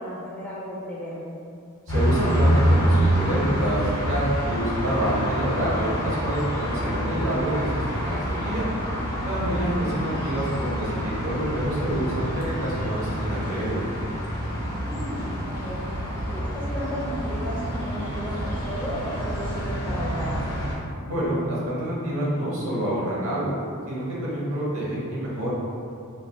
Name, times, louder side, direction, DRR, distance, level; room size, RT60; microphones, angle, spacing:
voice 1, 0.0-1.3 9.8-10.2 14.8-15.8 16.3-20.6, equal, 10° left, -6 dB, 0.3 m, -34 dB
sound 1, 1.9-20.8, equal, 75° left, 0.7 m, -27 dB
voice 2, 1.9-8.7 9.2-13.8 21.0-23.5 23.9-25.5, right 1 dB, 65° right, -7 dB, 0.8 m, -27 dB
3.3 x 2.0 x 2.5 m, 2.4 s
head